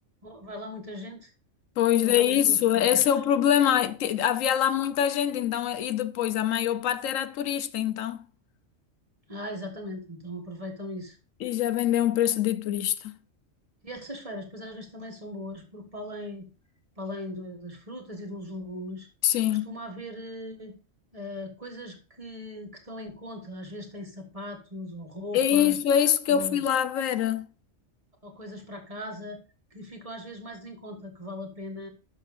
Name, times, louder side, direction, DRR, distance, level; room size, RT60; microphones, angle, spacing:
voice 1, 0.2-1.3 1.9-3.0 9.3-11.2 13.8-16.5 17.0-19.1 19.5-20.8 21.1-25.8 26.3-26.6 28.2-29.4 29.7-31.9, left 1 dB, 30° right, 1.5 m, -39 dB
voice 2, 1.8-8.2 11.4-13.2 19.2-19.7 25.3-27.5, left 10 dB, 80° left, 1.0 m, -24 dB
12.0 x 6.3 x 2.5 m
omnidirectional pair, 1.3 m